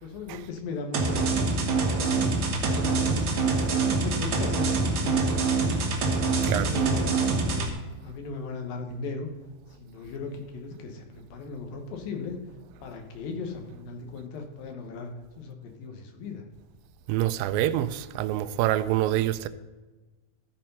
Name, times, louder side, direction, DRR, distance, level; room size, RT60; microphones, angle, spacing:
voice 1, 0.0-3.2 3.7-5.8 6.3-7.7 8.0-9.3 9.8-12.4 12.8-15.1 15.4-16.4, left 4 dB, 85° left, 2.9 m, -37 dB
sound 1, 0.9-7.7, right 3 dB, 55° right, 1.6 m, -25 dB
voice 2, 17.1-19.5, right 13 dB, 85° right, 2.3 m, -26 dB
13.0 x 4.5 x 5.4 m
omnidirectional pair, 4.0 m